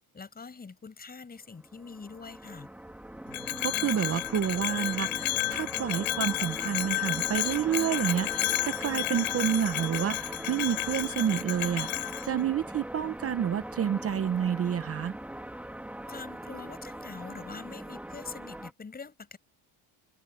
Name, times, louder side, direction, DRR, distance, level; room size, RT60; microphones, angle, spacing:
voice 1, 0.1-2.7 16.1-19.4, left 5 dB, 20° left, 5.7 m, -44 dB
sound 1, 1.5-18.7, right 1 dB, 5° right, 2.2 m, -41 dB
Bell, 3.3-12.3, left 21 dB, 85° left, 5.6 m, -32 dB
voice 2, 3.6-11.9 12.2-15.2, right 9 dB, 30° right, 0.8 m, -29 dB
open air
cardioid pair, 175°, 49 cm